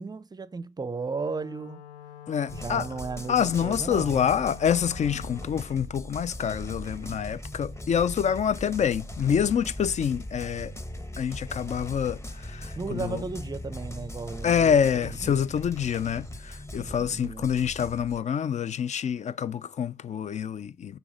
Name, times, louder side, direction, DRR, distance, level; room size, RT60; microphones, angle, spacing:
voice 1, 0.0-1.8 2.5-4.2 12.8-14.8 15.2-15.4 16.7-17.5, right 4 dB, 20° right, 0.6 m, -35 dB
Wind instrument woodwind instrument, 1.1-5.6, left 10 dB, 85° left, 0.5 m, -47 dB
voice 2, 2.3-2.9 3.3-10.7 11.2-13.2 14.4-21.0, left 8 dB, 40° left, 0.5 m, -26 dB
sound 1, 2.5-18.2, left 1 dB, 15° left, 1.1 m, -39 dB
6.0 x 3.5 x 5.1 m
hypercardioid pair, 55°, 19 cm